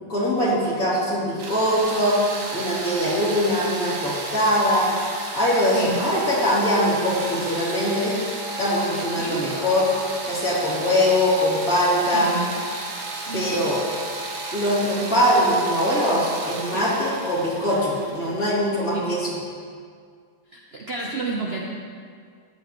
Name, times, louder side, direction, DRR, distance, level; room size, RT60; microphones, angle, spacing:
voice 1, 0.1-2.2 2.5-4.9 5.3-8.2 8.6-9.9 10.2-12.3 13.3-13.8 14.5-19.4, equal, 40° left, -8 dB, 3.5 m, -22 dB
sound 1, 1.4-19.1, right 2 dB, 45° right, 1.2 m, -33 dB
voice 2, 5.7-6.0 9.2-9.5 12.1-12.5 13.3-13.6 16.7-16.9 18.9-19.1 20.5-21.7, right 3 dB, 65° right, -1 dB, 0.6 m, -30 dB
13.5 x 11.0 x 3.1 m, 2.1 s
omnidirectional pair, 2.4 m